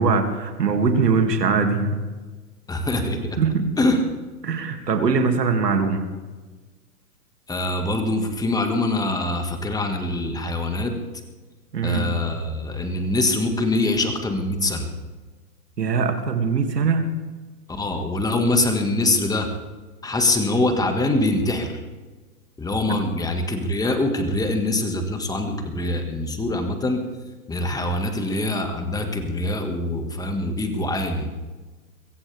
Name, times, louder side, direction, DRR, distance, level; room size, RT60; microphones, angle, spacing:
voice 1, 0.0-2.0 3.4-3.7 4.4-6.0 11.7-12.2 15.8-17.1, right 4 dB, 90° right, 6 dB, 2.5 m, -21 dB
voice 2, 2.7-3.4 3.8-4.0 7.5-10.9 11.8-14.9 17.7-19.5 20.0-21.8 22.6-27.0 27.5-31.3, left 2 dB, 10° left, 5 dB, 1.7 m, -24 dB
23.0 x 15.5 x 3.4 m, 1.3 s
hypercardioid pair, 130°, 47 cm